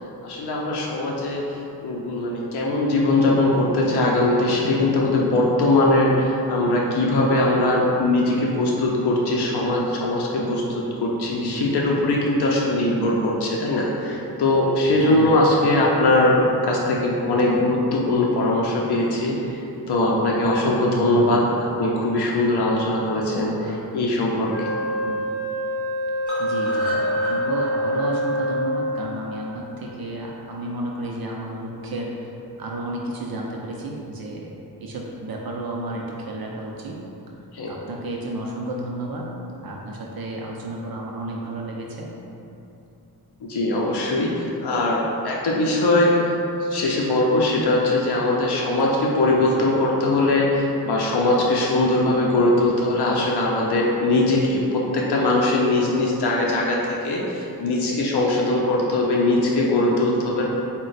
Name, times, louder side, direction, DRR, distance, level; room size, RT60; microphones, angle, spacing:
voice 1, 0.2-10.6 11.0-19.6 19.9-23.5 23.9-24.7 37.5-37.7 43.4-46.3 46.6-60.5, left 2 dB, 75° left, -3 dB, 0.5 m, -21 dB
voice 2, 11.4-11.7 14.8-15.5 21.0-21.4 22.9-23.8 25.0-25.2 26.4-32.3 32.6-37.0 37.7-39.3 39.6-42.1 49.4-49.7, right 2 dB, 65° right, -1 dB, 0.5 m, -32 dB
Wind instrument woodwind instrument, 24.5-29.2, equal, 20° left, 0.9 m, -26 dB
sound 1, 26.3-30.3 30.6-30.7 31.0-31.1 31.4-31.5, equal, 50° left, 1.0 m, -34 dB
4.1 x 2.2 x 3.9 m, 2.9 s
wide cardioid pair, 85°, 40 cm